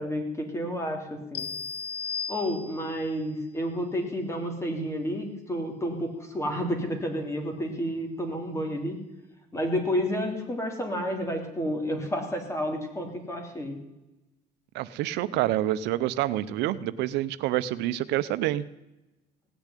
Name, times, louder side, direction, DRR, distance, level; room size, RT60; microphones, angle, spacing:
voice 1, 0.0-1.5 2.3-9.0 9.5-13.8, equal, 15° left, 3 dB, 3.3 m, -30 dB
sound 1, 1.3-3.1, left 6 dB, 75° left, 0.8 m, -35 dB
voice 2, 14.7-18.6, right 14 dB, 90° right, 14 dB, 0.6 m, -27 dB
17.5 x 7.1 x 9.9 m, 0.98 s
cardioid pair, 110°, 17 cm